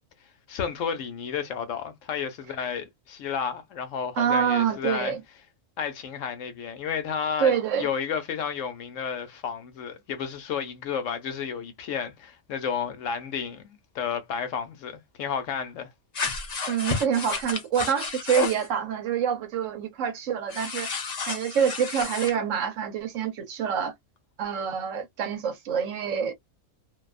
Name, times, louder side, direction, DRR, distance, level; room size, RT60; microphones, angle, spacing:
voice 1, 0.5-5.1 5.8-15.9, left 7 dB, 75° left, 1.0 m, -32 dB
voice 2, 4.1-5.2 7.4-7.9 16.7-20.9 21.3-23.9 24.4-26.3, right 8 dB, 75° right, 1.0 m, -26 dB
sound 1, 16.1-18.7 20.5-22.3, left 5 dB, 45° left, 0.6 m, -31 dB
2.6 x 2.2 x 2.3 m
omnidirectional pair, 1.4 m